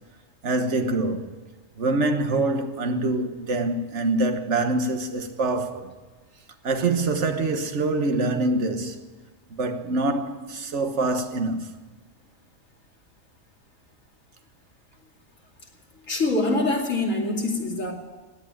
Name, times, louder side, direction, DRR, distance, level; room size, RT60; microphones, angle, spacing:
voice 1, 0.4-1.3 1.8-5.9 6.6-9.0 9.5-11.7, right 2 dB, 55° right, 1.6 m, -25 dB
voice 2, 16.0-17.9, left 2 dB, 65° left, 3.0 m, -24 dB
16.5 x 9.6 x 8.9 m
omnidirectional pair, 1.4 m